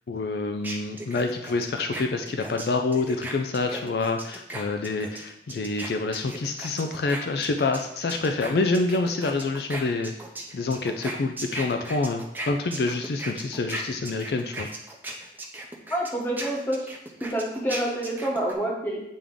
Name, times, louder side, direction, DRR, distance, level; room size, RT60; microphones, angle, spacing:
voice 1, 0.1-10.1 10.5-14.7, left 3 dB, 65° left, 5 dB, 0.4 m, -27 dB
sound 1, 0.6-7.8 8.1-18.5, right 1 dB, 10° right, 0.6 m, -37 dB
voice 2, 15.9-16.9 17.2-19.0, right 1 dB, 10° left, -2 dB, 1.1 m, -27 dB
8.6 x 3.5 x 3.6 m, 0.80 s
head